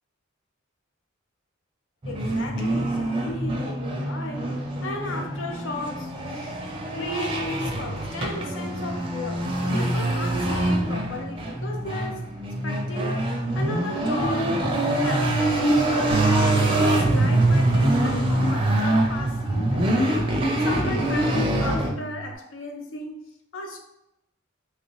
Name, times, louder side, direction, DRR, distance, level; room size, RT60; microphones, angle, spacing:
voice 1, 2.0-6.6 7.0-12.3 12.6-13.2 13.5-20.3 20.6-23.2 23.5-23.8, left 1 dB, 70° left, 0.6 m, -35 dB
sound 1, 2.0-21.9, right 1 dB, 25° right, 0.5 m, -24 dB
Bass guitar, 16.1-22.4, right 5 dB, 90° right, 0.3 m, -29 dB
2.9 x 2.8 x 3.0 m
head